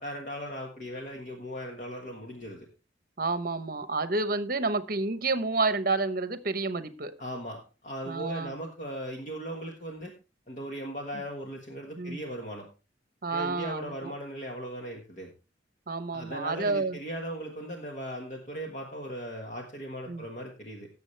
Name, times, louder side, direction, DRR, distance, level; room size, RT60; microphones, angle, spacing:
voice 1, 0.0-2.7 7.2-10.1 10.5-12.7 13.3-15.3 16.1-20.9, equal, 40° left, 1 dB, 1.5 m, -38 dB
voice 2, 3.2-7.1 8.1-8.6 12.0-12.2 13.2-14.1 15.9-17.0 20.1-20.3, right 3 dB, 50° right, 12 dB, 0.9 m, -29 dB
17.0 x 7.1 x 3.3 m, 0.33 s
head